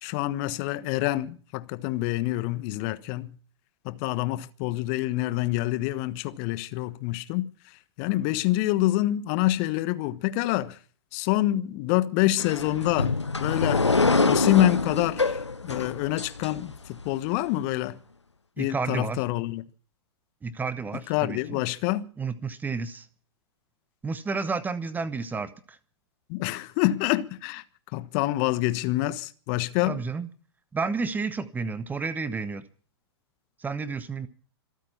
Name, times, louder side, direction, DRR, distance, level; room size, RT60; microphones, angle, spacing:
voice 1, 0.0-3.4 3.8-7.5 8.0-10.8 11.1-13.9 14.3-18.0 18.6-19.6 20.9-22.1 26.3-27.6 27.9-30.0, left 16 dB, 40° left, 1.2 m, -26 dB
sound 1, 12.4-17.1, left 3 dB, 85° left, 1.0 m, -25 dB
voice 2, 18.6-19.2 20.4-21.6 22.2-23.1 24.0-25.8 29.9-30.3 30.7-32.6 33.6-34.3, right 4 dB, 10° right, 1.1 m, -31 dB
26.0 x 9.0 x 5.8 m
figure-of-eight pair, 105°, 14 cm